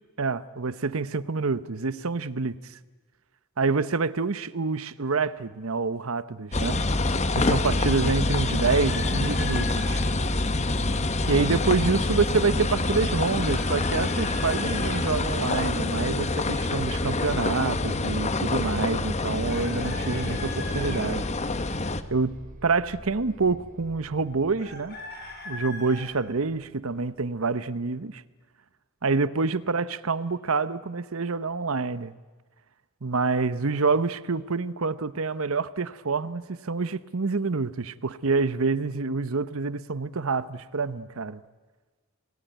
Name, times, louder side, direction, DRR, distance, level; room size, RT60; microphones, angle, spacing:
voice 1, 0.2-2.6 3.6-6.8 7.3-10.0 11.3-21.3 22.1-25.0 25.5-28.2 29.0-32.1 33.0-41.4, right 4 dB, 75° right, 0.9 m, -27 dB
sound 1, 6.5-22.0, left 2 dB, 30° left, 1.0 m, -26 dB
Chicken rooster, 8.5-10.0 13.4-14.9 19.5-21.0 24.6-26.1, left 2 dB, 50° left, 6.6 m, -39 dB
sound 2, 19.5-27.4, equal, 40° right, 4.5 m, -47 dB
29.5 x 20.5 x 9.2 m
head